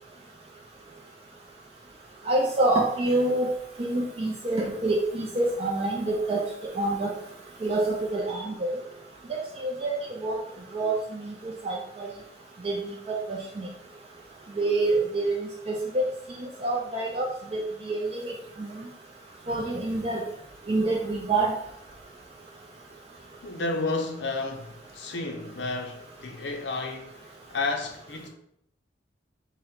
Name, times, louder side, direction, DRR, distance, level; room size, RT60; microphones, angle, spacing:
voice 1, 2.3-3.5 3.8-7.1 7.6-8.8 9.3-10.4 10.7-12.1 12.6-12.8 13.1-13.7 14.6-15.3 15.7-16.1 16.6-17.3 17.5-18.3 19.5-20.2 20.7-21.5, right 2 dB, 30° right, 0.4 m, -27 dB
voice 2, 23.4-28.3, left 3 dB, 65° left, 0.5 m, -32 dB
3.7 x 2.1 x 4.2 m
head